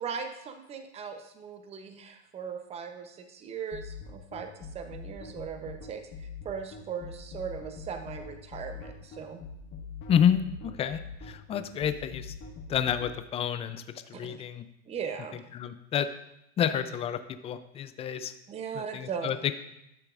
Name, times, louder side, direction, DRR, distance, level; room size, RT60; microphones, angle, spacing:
voice 1, 0.0-4.5 4.7-9.4 14.1-14.4 14.9-15.4 18.5-19.3, right 6 dB, 20° right, 7 dB, 0.7 m, -38 dB
sound 1, 3.7-13.1, left 5 dB, 35° left, 1.6 m, -42 dB
voice 2, 10.1-12.3 12.7-14.6 15.5-16.1 16.6-18.3 18.7-19.6, left 8 dB, 20° left, 11 dB, 0.4 m, -29 dB
12.0 x 6.6 x 2.5 m, 0.83 s
hypercardioid pair, 120°, 34 cm